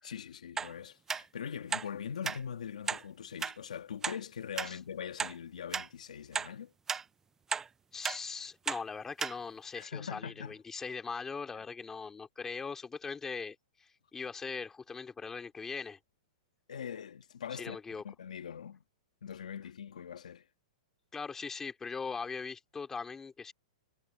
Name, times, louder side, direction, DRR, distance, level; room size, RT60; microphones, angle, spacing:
voice 1, 0.0-6.7 9.7-10.6 16.7-17.8 18.0-18.8 19.2-20.5, left 8 dB, 90° left, 1.9 m, -42 dB
sound 1, 0.6-0.7 1.1-1.2 1.7-1.9 2.2-2.4 2.9-3.0 3.4-3.5 4.0-4.2 4.6-4.7 5.2-5.3 5.7-5.9 6.3-6.5 6.9-7.0 7.5-7.7 8.0-8.2 8.7-8.8 9.2-9.3 9.8-9.9, right 6 dB, 10° right, 0.4 m, -34 dB
voice 2, 7.9-16.0 17.6-18.0 21.1-23.5, left 5 dB, 10° left, 2.4 m, -40 dB
hypercardioid pair, 150°, 4 cm